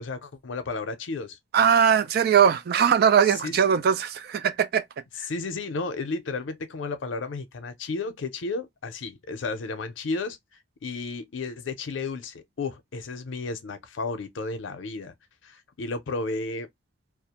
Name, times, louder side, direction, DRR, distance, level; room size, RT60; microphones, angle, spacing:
voice 1, 0.0-1.4 3.4-3.6 5.2-10.4 10.8-15.1 15.4-16.7, left 3 dB, 85° left, 0.5 m, -33 dB
voice 2, 1.5-4.8, right 7 dB, 55° right, 0.3 m, -20 dB
2.3 x 2.1 x 2.8 m
head